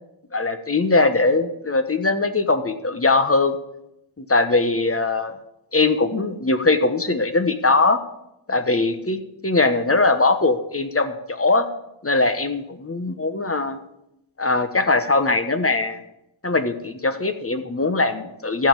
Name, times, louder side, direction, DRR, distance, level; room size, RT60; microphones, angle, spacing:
voice 1, 0.3-3.5 4.2-5.3 5.7-8.0 8.5-11.7 12.0-13.8 14.4-16.0 16.4-18.7, left 3 dB, 30° left, 9 dB, 1.1 m, -21 dB
14.0 x 5.4 x 7.6 m, 0.83 s
wide cardioid pair, 55°, 49 cm